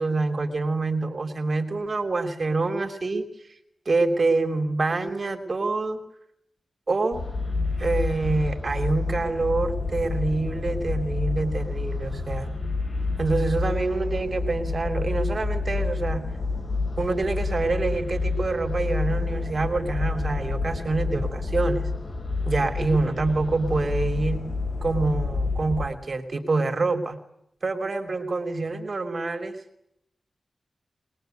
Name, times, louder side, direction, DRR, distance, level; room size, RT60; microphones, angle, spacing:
voice 1, 0.0-3.3 3.8-6.0 6.9-7.2 7.8-12.5 13.2-16.2 17.0-21.9 22.5-24.5 24.8-27.2 27.6-29.6, right 3 dB, 50° right, 6 dB, 3.0 m, -26 dB
sound 1, 7.1-25.9, left 3 dB, 45° left, 3.7 m, -28 dB
23.5 x 21.0 x 9.2 m, 0.76 s
wide cardioid pair, 100°, 0 cm